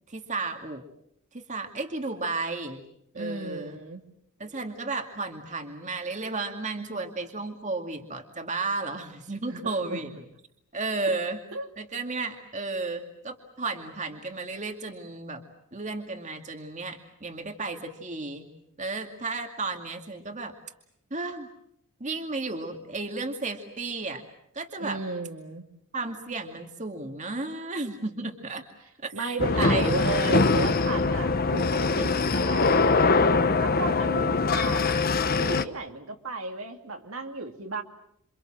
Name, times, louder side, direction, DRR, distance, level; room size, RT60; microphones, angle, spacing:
voice 1, 0.1-0.8 1.3-2.8 3.1-3.8 4.4-10.1 10.7-11.4 11.8-15.4 15.7-18.5 18.8-20.5 21.1-21.5 22.0-24.2 24.5-25.0 25.9-28.6 29.0-29.9, right 3 dB, 35° right, 5 dB, 2.4 m, -33 dB
voice 2, 3.1-4.0 9.5-10.0 11.1-11.2 11.5-11.7 24.8-25.7 29.1-33.1 33.6-35.0 35.4-37.8, right 3 dB, 70° right, 4 dB, 2.7 m, -34 dB
sound 1, 29.4-35.6, left 3 dB, 45° left, 1.1 m, -23 dB
28.5 x 25.5 x 7.7 m, 0.75 s
head